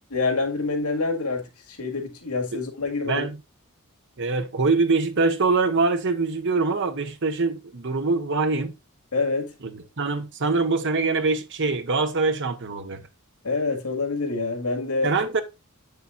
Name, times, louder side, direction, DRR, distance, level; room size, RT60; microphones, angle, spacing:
voice 1, 0.1-3.3 9.1-9.5 13.4-15.1, left 3 dB, 80° left, 2.0 m, -26 dB
voice 2, 3.0-3.4 4.2-8.7 9.6-13.0 15.0-15.4, right 3 dB, 55° right, 0.9 m, -24 dB
8.3 x 6.8 x 2.5 m
head